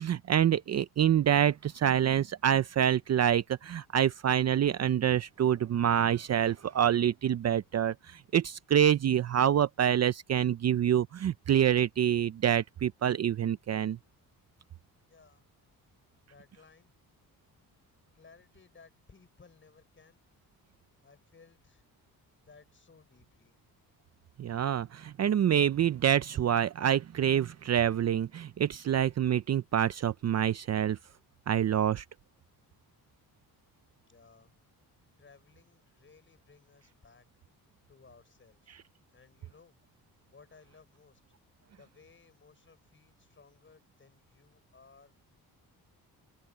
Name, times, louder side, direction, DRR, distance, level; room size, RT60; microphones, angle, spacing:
voice 1, 0.0-14.0 24.4-31.0 31.5-32.0, right 9 dB, 45° right, 0.6 m, -26 dB
voice 2, 15.0-15.5 16.2-16.9 18.1-20.2 21.0-21.8 22.3-23.6 34.0-34.5 35.2-37.3 37.9-38.8 39.1-39.8 40.3-41.2 41.7-45.1, left 5 dB, 30° left, 6.8 m, -59 dB
open air
cardioid pair, 110°, 37 cm